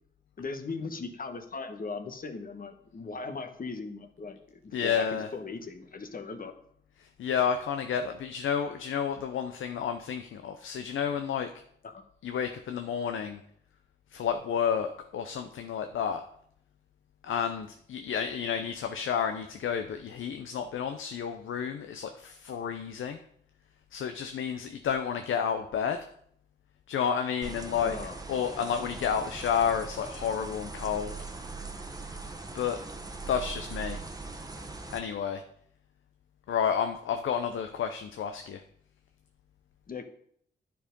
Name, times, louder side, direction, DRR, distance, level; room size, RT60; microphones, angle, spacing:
voice 1, 0.4-6.5 11.8-12.0 27.6-28.1 39.9-40.0, left 4 dB, 45° left, 6 dB, 1.2 m, -39 dB
voice 2, 4.7-5.3 7.0-11.5 12.2-13.4 14.1-16.2 17.2-23.2 23.9-26.1 26.9-28.0 28.3-31.2 32.5-32.8 33.3-34.0 34.9-35.4 36.5-38.6, left 7 dB, 85° left, 7 dB, 0.6 m, -31 dB
sound 1, 27.4-35.0, right 3 dB, 20° right, 1.1 m, -41 dB
9.8 x 4.7 x 5.2 m, 0.66 s
cardioid pair, 65°, 20 cm